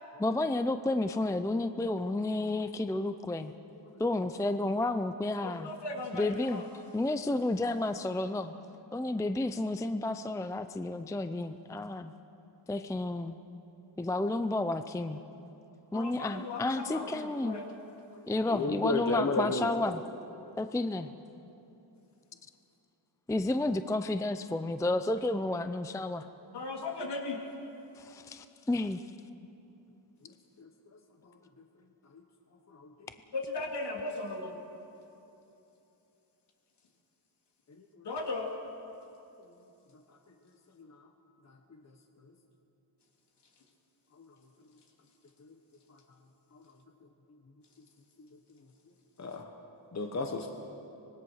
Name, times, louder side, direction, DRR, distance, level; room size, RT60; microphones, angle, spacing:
voice 1, 0.2-3.5 4.0-5.7 6.1-6.6 6.9-8.5 8.9-12.1 12.7-13.4 14.0-15.2 15.9-17.6 18.3-20.0 20.6-21.1 23.3-26.2 28.0-29.0, left 2 dB, 5° left, 10 dB, 0.4 m, -31 dB
voice 2, 5.4-6.7 15.9-17.7 26.5-27.4 33.3-34.6 38.0-38.5, left 2 dB, 60° left, 1 dB, 3.1 m, -37 dB
voice 3, 18.1-19.7 30.6-30.7 31.2-31.4 32.7-33.1 37.8-38.1 40.8-41.0 44.2-44.3 45.4-45.5 46.5-46.6 49.2-49.5 49.9-50.5, left 3 dB, 35° left, 4 dB, 1.3 m, -34 dB
24.5 x 20.0 x 6.4 m, 2.9 s
wide cardioid pair, 140°, 45 cm